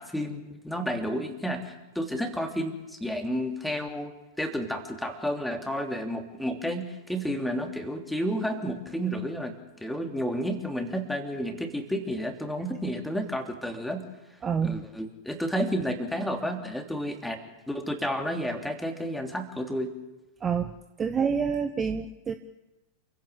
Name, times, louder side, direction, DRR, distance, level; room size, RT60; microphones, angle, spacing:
voice 1, 0.0-9.5 9.8-14.0 14.6-17.4 17.7-19.9, equal, 5° left, 5 dB, 3.2 m, -31 dB
voice 2, 14.4-14.8 20.4-20.7 21.0-22.3, right 6 dB, 20° right, 10 dB, 1.1 m, -27 dB
28.5 x 16.0 x 8.5 m, 1.0 s
figure-of-eight pair, 90°, 0 cm